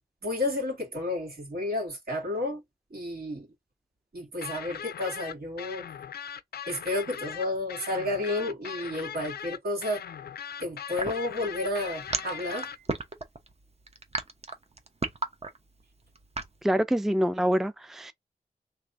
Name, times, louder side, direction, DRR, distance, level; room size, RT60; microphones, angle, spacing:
voice 1, 0.2-2.6 2.9-3.5 4.1-5.9 6.7-10.0 10.6-12.7, left 2 dB, 75° right, 2.5 m, -31 dB
sound 1, 4.4-12.8, left 8 dB, 85° left, 0.4 m, -39 dB
sound 2, 11.0-16.6, right 3 dB, 40° right, 0.9 m, -33 dB
voice 2, 16.6-18.1, equal, ahead, 0.4 m, -25 dB
3.4 x 3.1 x 2.6 m
cardioid pair, 45°, 16 cm